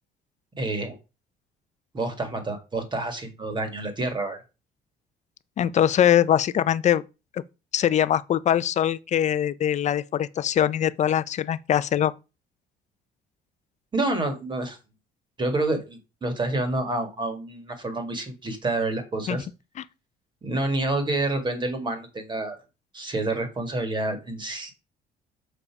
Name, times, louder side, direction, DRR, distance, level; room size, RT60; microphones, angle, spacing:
voice 1, 0.6-1.0 1.9-4.4 13.9-14.8 15.4-19.5 20.4-22.6 22.9-24.7, right 2 dB, 25° right, 2.2 m, -28 dB
voice 2, 5.6-7.0 7.3-7.4 7.7-12.1 19.3-19.4, left 10 dB, 45° left, 0.5 m, -22 dB
6.6 x 4.9 x 4.8 m
cardioid pair, 110°, 17 cm